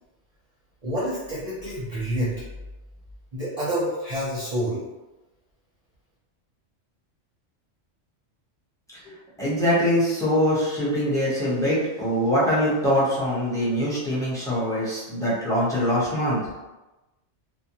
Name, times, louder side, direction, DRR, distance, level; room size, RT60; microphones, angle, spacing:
voice 1, 0.8-2.3 3.3-4.8, equal, 40° right, -9 dB, 0.6 m, -28 dB
voice 2, 9.0-16.4, equal, 5° left, -9 dB, 0.7 m, -23 dB
2.5 x 2.1 x 2.8 m, 1.1 s
omnidirectional pair, 1.2 m